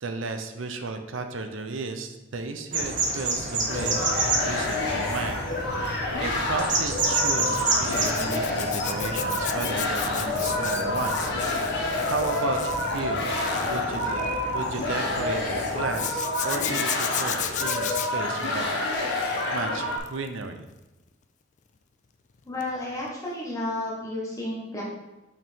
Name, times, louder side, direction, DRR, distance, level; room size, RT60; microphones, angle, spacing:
voice 1, 0.0-5.4 5.8-11.3 12.1-13.3 13.6-18.7 19.5-20.7, right 3 dB, 65° right, 6 dB, 0.7 m, -34 dB
sound 1, 2.7-16.0, right 2 dB, 40° right, 1.2 m, -31 dB
sound 2, 3.7-20.0, left 2 dB, 55° left, 1.3 m, -28 dB
Zipper (clothing), 7.5-15.0 15.9-19.6 19.9-20.3 22.6-22.8 23.0-23.1, left 10 dB, 35° left, 0.3 m, -34 dB
voice 2, 22.4-24.8, left 2 dB, 15° left, -5 dB, 1.4 m, -32 dB
5.7 x 5.4 x 4.5 m, 1.0 s
head